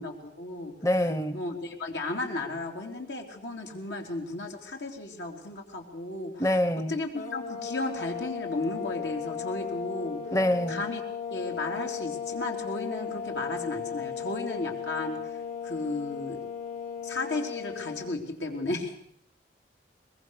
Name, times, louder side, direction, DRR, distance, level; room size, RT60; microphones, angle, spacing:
voice 1, 0.0-0.7 1.0-6.6 6.9-10.2 10.7-11.0 11.3-15.2 15.6-16.4 17.0-18.9, left 2 dB, 85° left, 2 dB, 4.0 m, -34 dB
voice 2, 0.8-1.4 6.4-6.9 10.3-10.8, left 1 dB, 20° left, 11 dB, 0.8 m, -25 dB
sound 1, 7.1-18.2, left 7 dB, 45° left, 1.7 m, -36 dB
22.5 x 21.5 x 6.7 m, 0.67 s
head